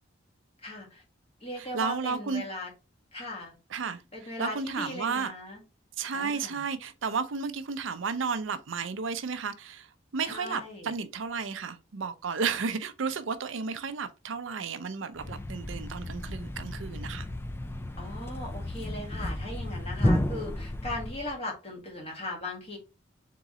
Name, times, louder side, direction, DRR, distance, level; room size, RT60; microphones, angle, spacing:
voice 1, 0.6-1.0 1.4-2.7 3.1-3.5 4.1-5.6 6.1-6.6 10.2-10.9 18.0-22.8, left 1 dB, 30° left, 1.6 m, -38 dB
voice 2, 1.6-2.5 3.7-5.3 6.0-17.3, right 5 dB, 80° right, 0.5 m, -33 dB
Thump thud, 15.1-21.4, left 1 dB, 10° left, 0.3 m, -32 dB
3.8 x 3.7 x 3.0 m
head